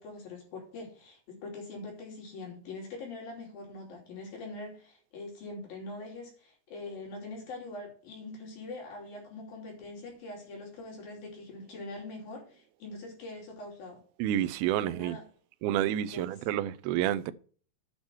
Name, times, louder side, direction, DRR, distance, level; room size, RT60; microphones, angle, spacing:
voice 1, 0.0-14.0 14.8-15.2 16.1-16.3, left 2 dB, 60° left, 4.7 m, -43 dB
voice 2, 14.2-15.2 15.6-17.3, right 12 dB, 80° right, 2.5 m, -29 dB
8.9 x 5.9 x 6.0 m
omnidirectional pair, 4.7 m